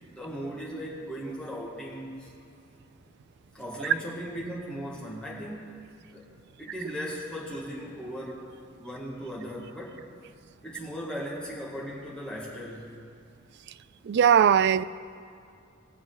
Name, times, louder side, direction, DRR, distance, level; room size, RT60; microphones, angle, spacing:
voice 1, 0.1-2.3 3.5-5.8 6.1-6.3 6.6-8.5 8.7-10.0 10.6-13.0, equal, 5° left, -6 dB, 1.9 m, -37 dB
voice 2, 14.0-14.8, right 8 dB, 55° right, 15 dB, 0.3 m, -19 dB
21.5 x 7.3 x 3.9 m, 2.4 s
head